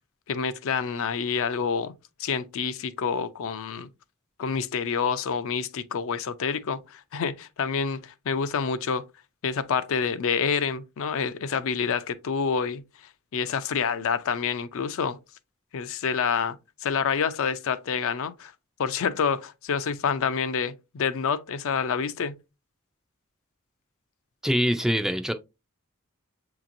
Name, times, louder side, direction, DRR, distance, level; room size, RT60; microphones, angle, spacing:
voice 1, 0.3-1.9 2.2-3.9 4.4-9.0 9.4-12.8 13.3-15.2 15.7-18.5 18.8-22.4, left 6 dB, 65° left, 0.4 m, -27 dB
voice 2, 24.4-25.3, equal, ahead, 0.3 m, -24 dB
7.1 x 2.9 x 2.5 m
head